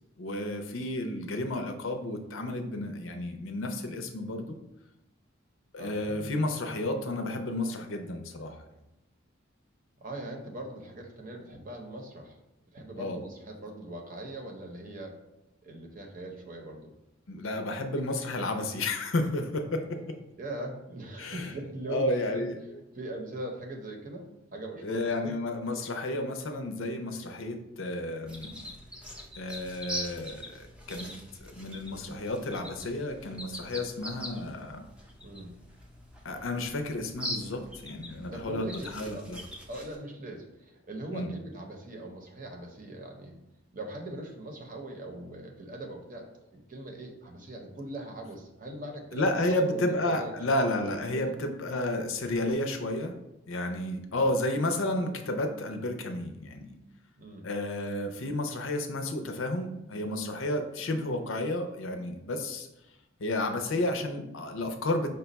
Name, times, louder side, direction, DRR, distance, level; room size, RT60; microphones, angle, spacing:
voice 1, 0.2-4.6 5.7-8.6 13.0-13.2 17.3-20.2 21.2-21.5 21.9-22.8 24.8-28.7 29.4-30.5 30.9-31.1 31.4-34.8 36.2-39.4 41.1-41.3 49.1-53.1 53.5-56.8 57.4-62.7 63.2-65.1, left 1 dB, 80° left, 6 dB, 0.6 m, -31 dB
voice 2, 5.8-6.3 10.0-12.4 12.7-15.2 15.6-16.9 20.4-22.5 22.9-25.4 35.2-35.6 38.3-39.2 39.7-43.4 43.7-46.3 46.5-50.4 51.1-51.3 57.2-57.5, right 1 dB, 45° right, 2 dB, 0.8 m, -41 dB
sound 1, 28.3-40.0, equal, 5° right, 0.5 m, -43 dB
5.3 x 2.3 x 4.0 m, 0.91 s
head